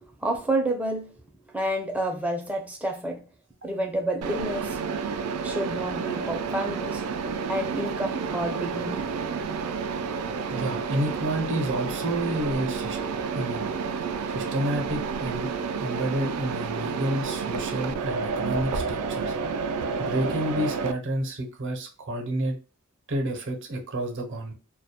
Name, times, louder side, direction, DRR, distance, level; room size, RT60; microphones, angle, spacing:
voice 1, 0.2-1.1 1.5-3.2 3.6-4.8 5.4-7.0 7.5-9.1 9.3-9.5 10.4-10.6, right 1 dB, 5° right, 0.4 m, -29 dB
Mechanisms, 4.2-20.9, right 5 dB, 85° right, 0.3 m, -30 dB
voice 2, 10.5-13.0 13.3-13.7 14.3-15.5 15.8-19.3 20.0-22.6 23.1-24.5, right 1 dB, 55° right, 0.6 m, -30 dB
2.2 x 2.0 x 2.7 m
head